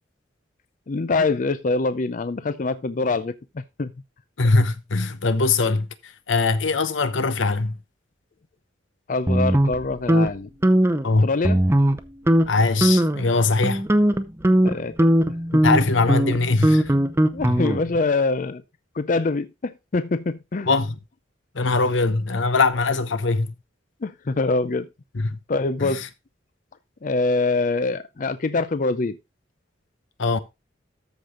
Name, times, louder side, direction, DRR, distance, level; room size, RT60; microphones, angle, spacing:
voice 1, 0.9-3.9 9.1-10.5 11.2-11.6 14.6-15.0 15.5-15.6 17.3-18.6 18.9-20.7 24.0-24.9 25.5-26.0 27.0-29.2, left 3 dB, 40° left, 0.5 m, -24 dB
voice 2, 4.4-7.8 11.0-11.3 12.5-13.8 15.6-16.9 17.4-17.6 20.7-21.0 21.5-23.5 25.1-25.4 25.8-26.1 30.2-30.4, left 3 dB, 75° left, 0.9 m, -21 dB
sound 1, 9.3-10.3 10.6-11.0 11.4-12.0 12.3-12.5 12.8-13.2 13.6-18.0, right 1 dB, 15° right, 0.7 m, -19 dB
13.5 x 5.1 x 3.8 m
head